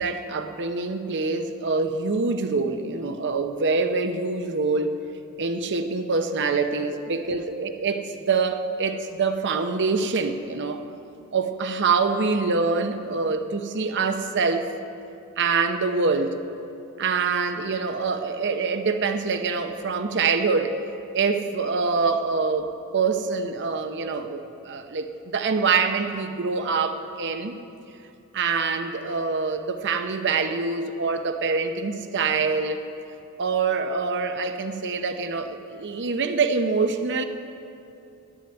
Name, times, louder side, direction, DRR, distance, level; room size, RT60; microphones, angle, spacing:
voice 1, 0.0-4.9 5.4-10.8 11.3-14.7 15.4-16.4 17.0-20.8 21.1-27.6 28.3-32.9 33.4-37.2, right 4 dB, 55° right, 8 dB, 0.8 m, -25 dB
10.0 x 9.3 x 9.6 m, 2.7 s
head